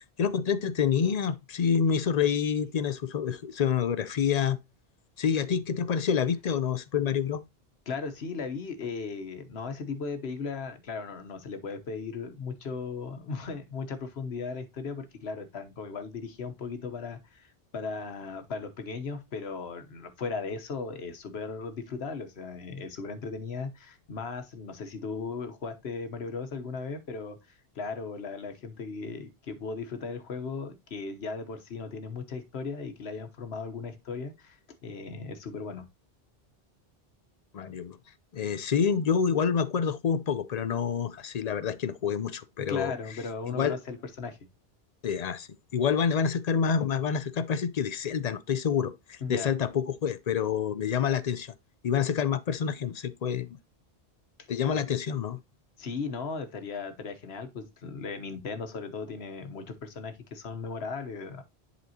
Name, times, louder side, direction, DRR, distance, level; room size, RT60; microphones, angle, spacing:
voice 1, 0.2-4.6 5.2-7.4 37.5-38.0 38.3-42.9 43.5-43.8 45.0-51.5 51.8-53.6 54.5-55.4, left 7 dB, 50° left, 0.5 m, -27 dB
voice 2, 7.9-27.4 27.7-35.9 42.7-44.4 49.2-49.5 54.7-54.8 55.8-61.4, left 4 dB, 75° left, 1.3 m, -37 dB
10.5 x 4.2 x 2.8 m
omnidirectional pair, 1.1 m